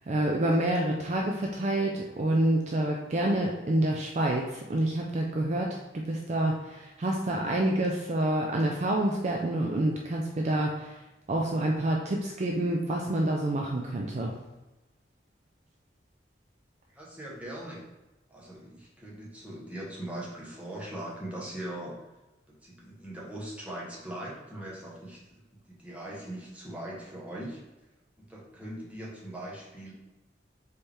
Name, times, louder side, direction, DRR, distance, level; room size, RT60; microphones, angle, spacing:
voice 1, 0.1-11.0 11.3-14.3, right 1 dB, 40° right, 0 dB, 0.4 m, -28 dB
voice 2, 16.9-17.8 18.3-22.0 22.5-27.6 28.2-29.9, right 1 dB, 10° right, -5 dB, 1.0 m, -40 dB
4.3 x 3.3 x 3.3 m, 1.1 s
head